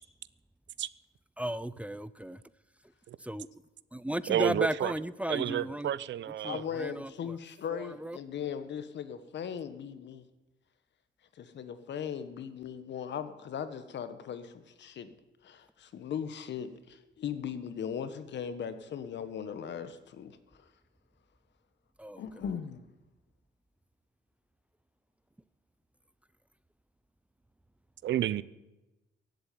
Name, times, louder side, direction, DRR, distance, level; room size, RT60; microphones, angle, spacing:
voice 1, 1.4-2.4 3.2-3.5 3.9-5.9 6.4-7.4 7.7-8.2 22.0-22.2, right 1 dB, 5° right, 0.5 m, -35 dB
voice 2, 4.3-4.9 5.3-6.6 28.0-28.4, right 11 dB, 65° right, 0.7 m, -30 dB
voice 3, 6.4-10.2 11.3-15.1 15.4-20.7 22.2-22.8, left 8 dB, 65° left, 1.4 m, -38 dB
16.0 x 8.1 x 9.4 m
cardioid pair, 90°, 20 cm